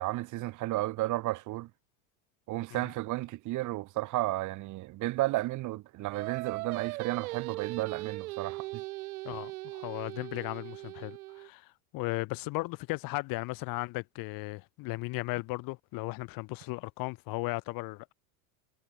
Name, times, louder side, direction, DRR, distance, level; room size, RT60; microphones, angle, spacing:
voice 1, 0.0-1.7 2.5-8.8, right 18 dB, 45° right, 4.5 m, -33 dB
Singing, 6.1-11.5, right 20 dB, 80° right, 1.7 m, -39 dB
voice 2, 9.2-18.1, left 24 dB, 50° left, 7.5 m, -36 dB
supercardioid pair, 150°, 43 cm